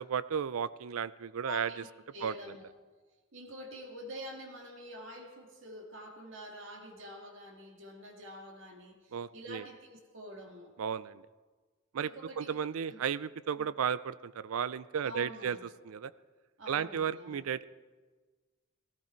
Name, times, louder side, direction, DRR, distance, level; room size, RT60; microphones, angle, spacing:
voice 1, 0.0-1.7 2.2-2.3 9.1-9.6 10.8-11.2 11.9-12.1 12.4-15.6 15.9-16.1 16.7-17.6, right 7 dB, 90° right, 18 dB, 0.4 m, -34 dB
voice 2, 1.4-1.8 2.1-2.7 3.3-10.7 12.0-12.6 12.9-13.1 13.5-13.7 15.0-15.7 16.6-17.5, equal, 65° right, 2 dB, 2.2 m, -47 dB
16.5 x 14.0 x 4.4 m, 1.4 s
head